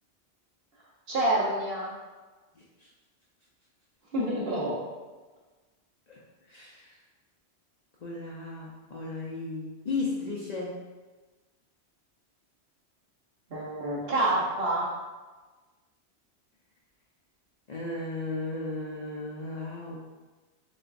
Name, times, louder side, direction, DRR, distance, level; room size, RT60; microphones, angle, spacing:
voice 1, 1.1-1.9 4.1-4.8 13.5-14.9, right 1 dB, 60° right, -5 dB, 1.3 m, -27 dB
voice 2, 2.6-2.9 6.1-6.2 6.5-7.0 8.0-10.8 17.7-20.1, left 3 dB, 50° left, -4 dB, 0.5 m, -35 dB
6.4 x 2.3 x 2.5 m, 1.3 s
omnidirectional pair, 1.1 m